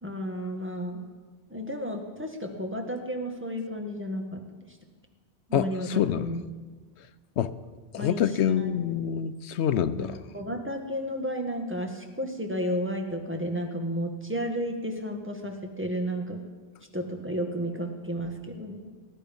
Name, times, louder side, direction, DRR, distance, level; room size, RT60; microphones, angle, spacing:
voice 1, 0.0-1.0 1.5-4.4 4.7-4.8 5.5-6.4 8.0-8.7 10.0-16.4 16.9-18.9, equal, 10° right, 2 dB, 1.7 m, -32 dB
voice 2, 5.5-6.3 7.4-7.6 7.9-10.2, left 9 dB, 85° left, 13 dB, 0.9 m, -26 dB
19.5 x 11.5 x 5.4 m, 1.4 s
omnidirectional pair, 1.1 m